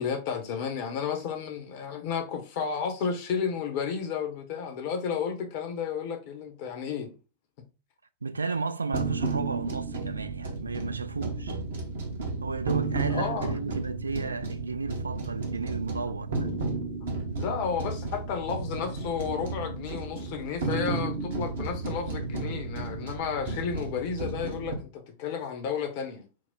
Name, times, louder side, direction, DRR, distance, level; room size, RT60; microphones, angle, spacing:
voice 1, 0.0-7.1 13.1-13.6 17.4-26.3, left 6 dB, 50° left, 0.8 m, -32 dB
voice 2, 8.2-11.6 12.4-16.5, right 4 dB, 75° right, 0.3 m, -33 dB
sound 1, 8.9-24.7, right 3 dB, 60° right, 0.9 m, -33 dB
4.6 x 2.0 x 3.9 m
figure-of-eight pair, 90°, 0 cm